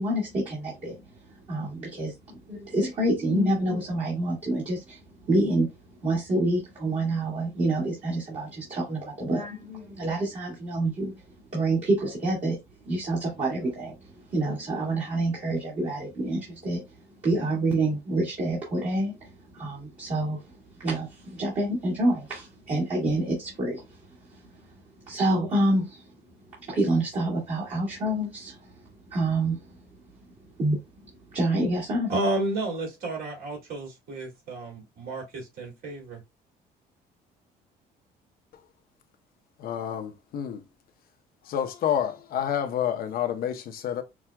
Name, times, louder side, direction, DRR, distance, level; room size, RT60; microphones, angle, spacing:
voice 1, 0.0-30.3 30.5-32.1, right 1 dB, 40° right, 1.9 m, -28 dB
voice 2, 32.1-36.2, right 2 dB, 65° right, 2.4 m, -31 dB
voice 3, 39.6-40.6 41.4-44.0, left 9 dB, 60° left, 0.8 m, -29 dB
6.0 x 2.4 x 2.2 m
cardioid pair, 110°, 17 cm